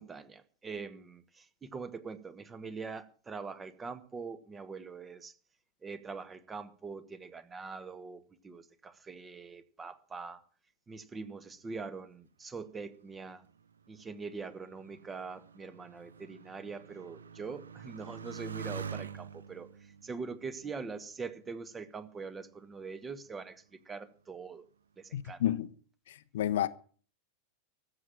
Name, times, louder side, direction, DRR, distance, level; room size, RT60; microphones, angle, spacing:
voice 1, 0.0-5.3 5.8-10.4 10.9-13.4 13.9-19.7 20.0-24.7 25.0-25.4, right 4 dB, 15° right, 1.3 m, -43 dB
Motorcycle, 12.8-21.8 22.6-23.1, right 6 dB, 70° right, 0.7 m, -47 dB
voice 2, 25.1-25.7 26.1-26.7, left 11 dB, 60° left, 0.8 m, -30 dB
14.5 x 7.6 x 8.6 m
figure-of-eight pair, 90°, 0 cm